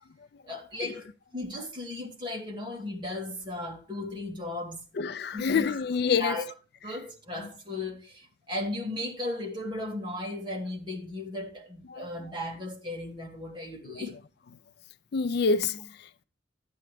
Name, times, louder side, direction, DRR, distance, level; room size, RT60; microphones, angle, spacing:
voice 1, 0.5-1.1 1.3-4.8 5.3-5.7 6.2-6.5 6.8-14.2, left 1 dB, 25° right, 2.2 m, -36 dB
voice 2, 5.0-6.4 11.9-12.0 13.9-14.0 15.1-16.2, left 5 dB, 55° left, 0.4 m, -27 dB
11.5 x 8.5 x 3.3 m
head